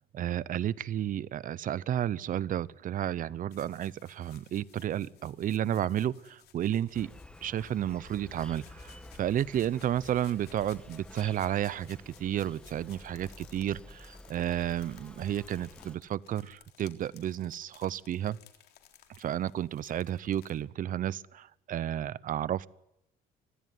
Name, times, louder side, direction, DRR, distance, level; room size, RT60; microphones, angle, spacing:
voice 1, 0.1-7.1 7.4-18.4 19.2-22.7, right 11 dB, 55° right, 20 dB, 0.9 m, -32 dB
sound 1, 3.5-20.6, left 11 dB, 70° left, 3.6 m, -59 dB
Insect, 6.9-16.0, left 1 dB, 5° left, 1.7 m, -51 dB
26.0 x 16.0 x 9.4 m, 0.80 s
cardioid pair, 110°, 17 cm